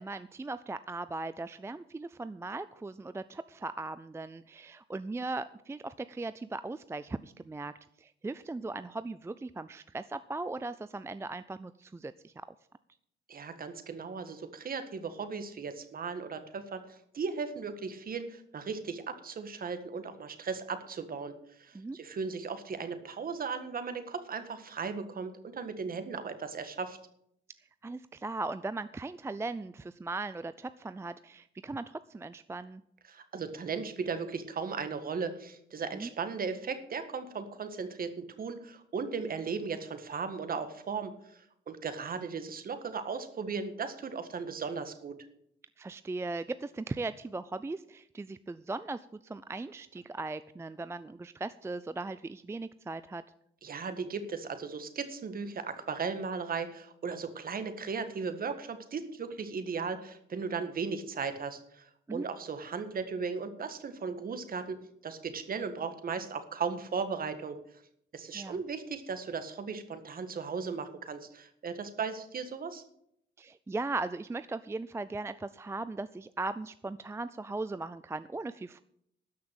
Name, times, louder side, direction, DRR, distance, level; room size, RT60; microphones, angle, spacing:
voice 1, 0.0-7.7 8.0-12.3 21.7-22.0 27.8-32.8 35.9-36.1 45.8-53.2 62.1-62.3 68.3-68.6 73.4-78.8, right 3 dB, 15° right, 14 dB, 0.4 m, -38 dB
voice 2, 13.3-21.3 21.6-27.0 33.1-45.2 53.6-64.8 65.0-67.6 68.1-72.8, right 5 dB, 45° right, 10 dB, 1.7 m, -37 dB
13.0 x 5.9 x 8.7 m, 0.72 s
cardioid pair, 90°, 20 cm